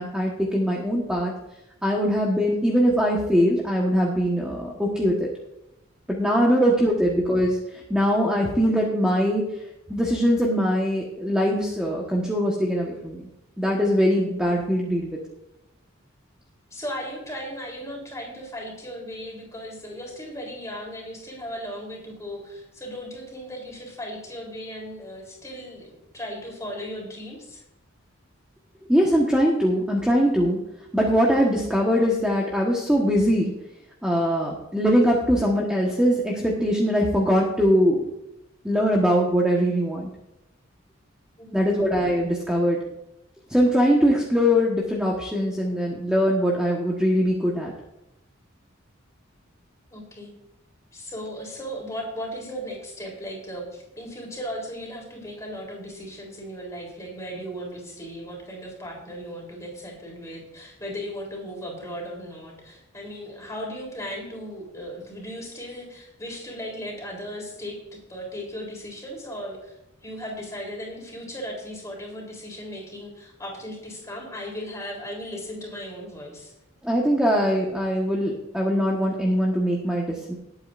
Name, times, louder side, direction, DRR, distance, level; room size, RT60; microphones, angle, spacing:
voice 1, 0.0-1.3 1.8-5.3 6.1-7.6 7.9-9.4 9.9-13.2 13.6-15.2 28.9-30.6 30.9-33.5 34.0-38.0 38.6-40.1 41.5-42.8 43.5-47.7 76.8-80.3, equal, 5° right, -3 dB, 1.3 m, -22 dB
voice 2, 16.7-27.6 41.4-41.8 49.9-50.4 50.9-69.8 70.0-76.5, equal, 15° left, -1 dB, 3.7 m, -37 dB
19.5 x 8.8 x 2.6 m, 0.88 s
head